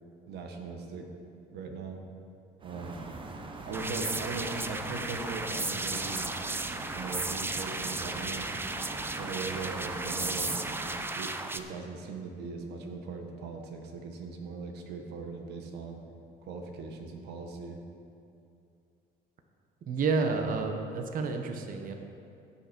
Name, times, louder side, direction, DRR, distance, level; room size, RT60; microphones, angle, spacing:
voice 1, 0.3-1.1 1.5-2.0 2.6-3.0 3.6-6.3 6.9-8.5 9.2-10.5 11.1-16.0 16.4-17.8, right 4 dB, 75° right, 3 dB, 1.4 m, -39 dB
sound 1, 2.6-11.0, right 3 dB, 30° right, 1.0 m, -42 dB
sound 2, 3.7-11.6, right 2 dB, 15° right, 0.5 m, -35 dB
voice 2, 19.9-21.9, right 4 dB, 55° right, 4 dB, 1.1 m, -30 dB
16.0 x 5.9 x 4.5 m, 2.6 s
cardioid pair, 110°, 17 cm